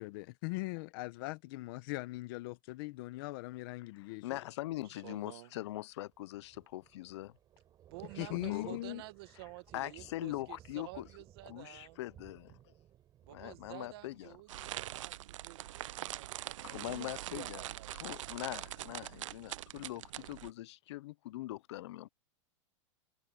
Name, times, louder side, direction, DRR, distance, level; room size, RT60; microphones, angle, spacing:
voice 1, 0.0-4.2 8.2-9.0, left 21 dB, 45° left, 0.9 m, -40 dB
voice 2, 3.9-7.4 8.2-8.8 9.7-11.1 11.5-12.7 13.3-14.7 16.6-17.6 18.0-22.1, left 16 dB, 60° left, 0.6 m, -42 dB
voice 3, 4.8-5.5 7.9-12.0 13.3-18.3, right 20 dB, 50° right, 1.7 m, -51 dB
Thunder / Rain, 6.1-16.0 16.3-16.6, right 11 dB, 25° right, 4.5 m, -60 dB
sound 1, 14.5-20.5, right 14 dB, 80° right, 0.5 m, -43 dB
supercardioid pair, 160°, 16 cm